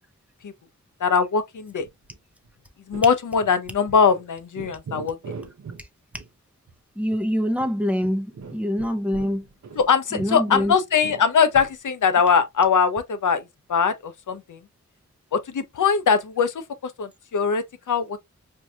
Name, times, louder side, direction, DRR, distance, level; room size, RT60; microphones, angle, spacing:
voice 1, 1.0-1.9 2.9-5.2 9.8-13.4 13.7-14.6 15.3-16.5 16.8-18.2, left 6 dB, 85° left, 0.6 m, -21 dB
sound 1, 1.8-2.2 2.4-2.5 2.9-3.1 3.4-4.2 4.5-5.8 6.1-6.3 6.7-6.8 7.1-7.2 7.6-9.9 10.2-11.8, right 5 dB, 70° right, 0.7 m, -41 dB
voice 2, 7.0-9.5 10.1-10.7, equal, 5° right, 0.6 m, -25 dB
4.5 x 2.6 x 2.3 m
wide cardioid pair, 75°, 30 cm